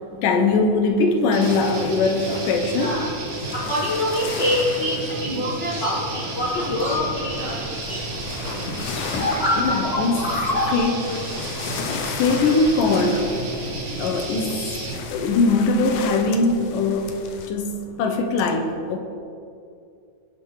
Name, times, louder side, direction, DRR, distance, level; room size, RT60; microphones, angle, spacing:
voice 1, 0.0-3.1 8.4-11.5 11.9-13.4 14.0-19.0, left 3 dB, 85° left, 4 dB, 2.7 m, -22 dB
sound 1, 1.3-15.0, right 3 dB, 80° right, 3.4 m, -32 dB
sound 2, 1.4-17.5, left 6 dB, 70° left, 1.7 m, -36 dB
voice 2, 2.8-3.1 3.5-8.0, left 1 dB, 50° left, -4 dB, 1.4 m, -25 dB
sound 3, 5.6-11.3, left 1 dB, 25° left, 1.8 m, -28 dB
20.0 x 8.1 x 4.8 m, 2.5 s
omnidirectional pair, 3.7 m